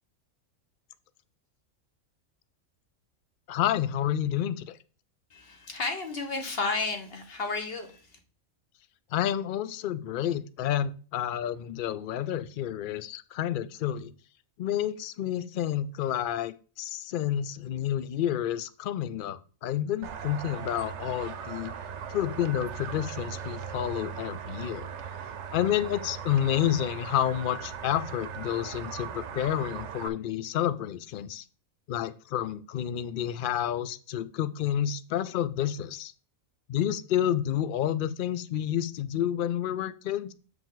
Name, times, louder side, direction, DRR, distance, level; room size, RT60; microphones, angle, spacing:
voice 1, 3.5-4.8 9.1-14.1 14.6-21.7 22.1-24.9 25.5-31.4 31.9-36.1 36.7-40.3, left 11 dB, 70° left, 14 dB, 0.5 m, -29 dB
voice 2, 5.3-8.1, left 3 dB, 45° left, 4 dB, 1.5 m, -32 dB
sound 1, 20.0-30.1, right 7 dB, 65° right, 0.9 m, -39 dB
7.6 x 4.9 x 3.9 m, 0.38 s
omnidirectional pair, 1.4 m